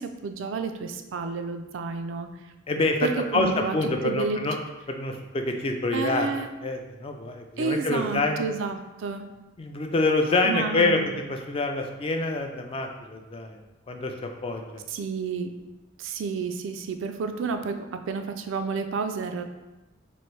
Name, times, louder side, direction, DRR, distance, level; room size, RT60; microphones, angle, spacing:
voice 1, 0.0-2.3 3.0-3.7 4.0-4.4 5.9-6.5 7.6-9.3 10.4-11.1 14.9-15.5 16.0-19.4, right 4 dB, 70° right, 7 dB, 0.3 m, -30 dB
voice 2, 2.7-4.6 4.9-8.4 9.6-11.0 11.3-13.6 13.9-14.8, left 2 dB, 30° left, 4 dB, 0.3 m, -26 dB
3.1 x 2.6 x 4.4 m, 1.1 s
head